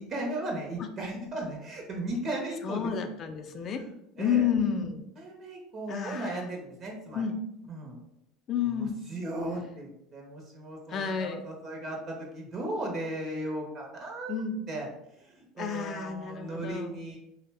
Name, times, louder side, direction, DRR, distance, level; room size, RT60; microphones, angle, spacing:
voice 1, 0.0-3.1 3.6-4.5 5.2-7.2 7.7-8.0 8.6-14.4 14.7-14.9 15.2-17.2, right 1 dB, 40° right, 0 dB, 0.6 m, -36 dB
voice 2, 2.6-3.8 4.2-5.0 5.9-6.5 7.1-7.4 8.5-9.0 10.9-11.4 14.3-14.6 15.6-17.0, left 7 dB, 40° left, 6 dB, 0.3 m, -30 dB
2.5 x 2.0 x 3.3 m, 0.82 s
supercardioid pair, 110°, 0 cm